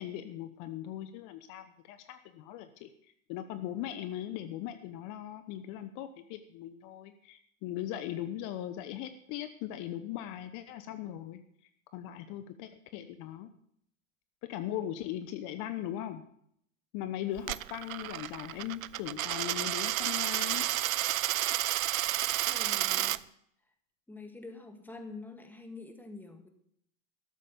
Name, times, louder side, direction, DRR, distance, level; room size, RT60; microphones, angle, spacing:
voice 1, 0.0-2.9 3.3-11.4 11.9-13.5 14.5-16.2 16.9-20.7, left 12 dB, 50° left, 10 dB, 1.0 m, -39 dB
Coin (dropping), 17.4-23.2, right 15 dB, 90° right, 0.5 m, -31 dB
voice 2, 22.5-23.2 24.1-26.5, left 3 dB, 5° left, 5 dB, 1.9 m, -46 dB
13.0 x 7.4 x 6.8 m, 0.71 s
hypercardioid pair, 100°, 40 cm